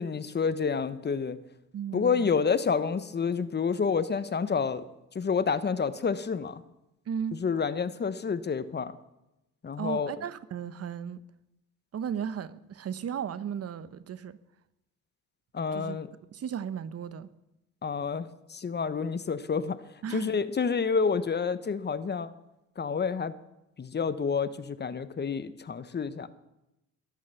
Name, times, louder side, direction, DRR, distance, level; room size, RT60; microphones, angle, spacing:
voice 1, 0.0-1.4 1.9-4.8 5.1-6.6 7.3-8.9 9.6-10.1 15.5-16.1 17.8-19.8 20.1-22.3 22.8-23.3 23.8-26.3, left 5 dB, 35° left, 1.0 m, -29 dB
voice 2, 1.7-2.3 7.1-7.4 9.8-11.2 11.9-14.4 15.7-16.0 16.3-17.3 20.0-20.4, right 8 dB, 55° right, 1.0 m, -35 dB
22.0 x 8.8 x 7.0 m
cardioid pair, 90°, 30 cm